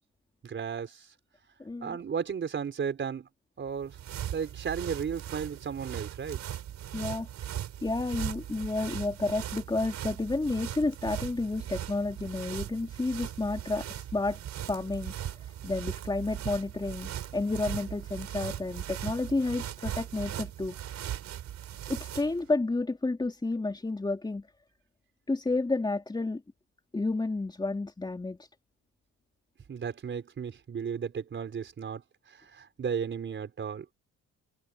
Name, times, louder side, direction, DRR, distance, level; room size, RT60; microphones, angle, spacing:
voice 1, 0.4-1.1 1.8-3.3 3.6-4.0 4.3-6.4 29.7-32.0 32.5-33.9, right 7 dB, 40° right, 4.5 m, -34 dB
voice 2, 1.6-2.0 6.9-7.3 7.8-14.4 14.6-20.8 21.9-24.5 25.3-26.4 26.9-28.5, left 2 dB, 15° left, 3.7 m, -31 dB
sound 1, 3.7-22.4, right 11 dB, 65° right, 4.3 m, -39 dB
cardioid pair, 110°, 30 cm